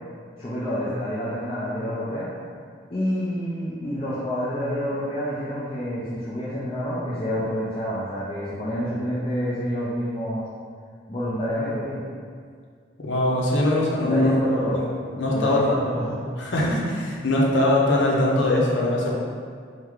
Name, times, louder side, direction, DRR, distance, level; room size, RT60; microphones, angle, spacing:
voice 1, 0.4-2.3 2.9-10.4 11.1-12.0 14.0-14.8 15.3-16.2, equal, 30° left, -10 dB, 0.5 m, -28 dB
voice 2, 13.0-14.3 14.7-14.9 15.2-15.6 16.4-19.1, left 1 dB, 90° left, -4 dB, 0.8 m, -21 dB
4.7 x 2.2 x 3.6 m, 2.1 s
head